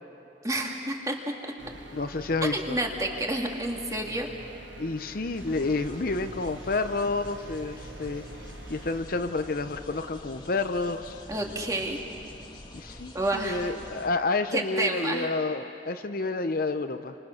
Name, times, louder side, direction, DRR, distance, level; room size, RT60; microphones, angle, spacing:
voice 1, 0.4-1.2 2.4-4.3 11.3-12.0 13.1-13.7 14.5-15.3, right 1 dB, 20° right, 1 dB, 2.2 m, -29 dB
sound 1, 1.6-9.0, right 2 dB, 85° right, 1.4 m, -46 dB
voice 2, 1.9-2.8 4.8-8.2 8.7-11.2 12.7-17.2, left 3 dB, 50° left, 9 dB, 0.7 m, -29 dB
sound 2, 5.3-14.1, left 1 dB, 25° left, 1.9 m, -46 dB
29.0 x 25.0 x 6.6 m, 3.0 s
head